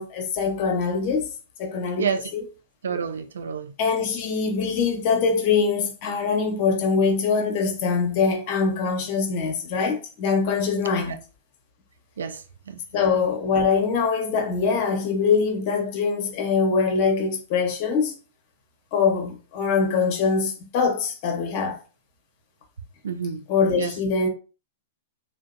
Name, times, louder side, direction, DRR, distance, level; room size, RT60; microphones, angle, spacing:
voice 1, 0.0-1.3 1.6-2.4 3.8-11.2 12.9-18.2 18.9-21.8 23.5-24.3, left 5 dB, 50° left, 0.7 m, -23 dB
voice 2, 2.8-3.7 12.2-12.4 12.7-12.8 23.0-23.4 23.8-23.9, right 6 dB, 80° right, 0.4 m, -28 dB
2.7 x 2.0 x 2.5 m
hypercardioid pair, 115°, 0 cm